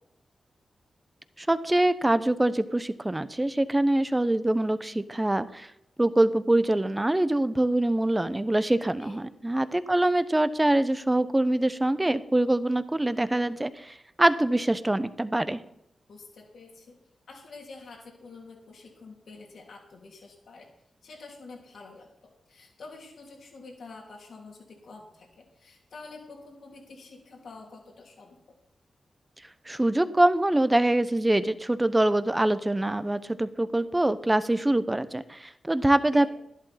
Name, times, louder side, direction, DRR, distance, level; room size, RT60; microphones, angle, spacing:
voice 1, 1.4-5.7 6.0-15.6 29.7-36.3, right 1 dB, 20° right, 13 dB, 0.9 m, -24 dB
voice 2, 16.1-17.0 17.3-20.7 21.0-22.1 22.5-28.4 36.1-36.3, left 3 dB, 75° left, 0 dB, 3.0 m, -47 dB
11.0 x 11.0 x 4.2 m, 0.78 s
supercardioid pair, 40°, 0 cm